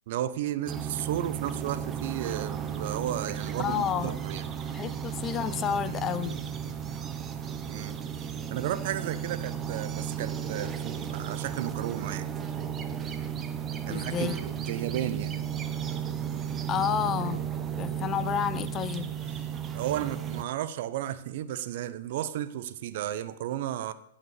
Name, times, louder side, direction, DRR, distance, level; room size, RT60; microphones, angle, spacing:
voice 1, 0.1-4.4 7.7-12.3 13.9-15.4 19.7-23.9, right 12 dB, 55° right, 14 dB, 0.8 m, -33 dB
sound 1, 0.7-20.4, right 8 dB, 20° right, 0.9 m, -34 dB
voice 2, 3.6-4.2 4.7-6.5 13.9-14.4 16.7-17.5 17.8-19.1, left 9 dB, 25° left, 14 dB, 0.7 m, -30 dB
16.5 x 5.8 x 7.3 m, 0.80 s
hypercardioid pair, 115°, 0 cm